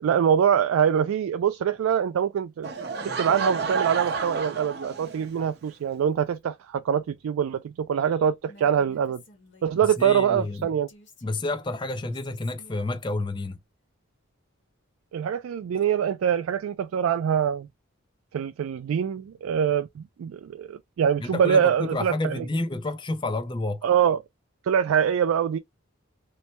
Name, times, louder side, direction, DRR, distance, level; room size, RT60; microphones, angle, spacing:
voice 1, 0.0-2.7 3.0-9.2 9.6-10.9 15.1-17.7 18.3-22.5 23.8-24.2 24.6-25.6, right 8 dB, 80° right, 0.3 m, -24 dB
Laughter / Crowd, 2.6-5.5, right 5 dB, 50° right, 0.6 m, -30 dB
Female speech woman speaking, 8.4-13.6, left 1 dB, 55° left, 1.2 m, -53 dB
voice 2, 10.0-10.7 11.2-13.6 21.2-23.8, left 2 dB, 20° left, 0.4 m, -30 dB
3.2 x 2.1 x 2.7 m
head